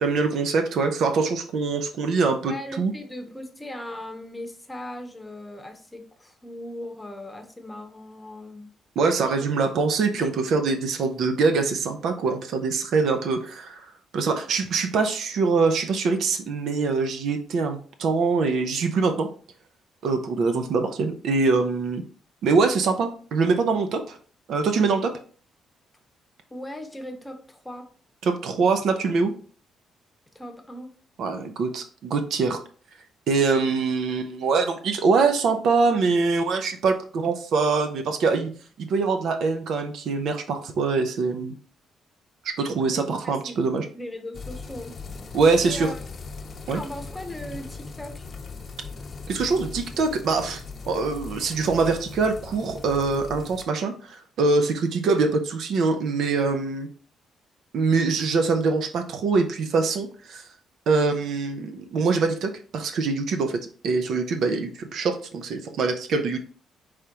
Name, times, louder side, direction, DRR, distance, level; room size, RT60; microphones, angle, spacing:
voice 1, 0.0-2.9 9.0-19.3 20.0-22.0 22.4-24.2 24.5-25.1 28.2-29.3 31.2-32.6 33.3-38.5 38.8-41.5 42.4-43.9 45.3-45.9 46.7-46.8 49.3-56.9 57.7-60.4 60.9-66.4, right 4 dB, 70° right, 7 dB, 0.6 m, -24 dB
voice 2, 2.5-8.7 9.4-9.5 26.5-27.9 30.3-30.9 42.9-43.5 43.9-44.9 45.6-46.0 46.7-48.3, left 1 dB, 10° left, 6 dB, 0.9 m, -38 dB
sound 1, 44.3-53.6, left 4 dB, 45° left, 0.7 m, -39 dB
4.9 x 3.4 x 2.9 m, 0.42 s
cardioid pair, 90°, 0 cm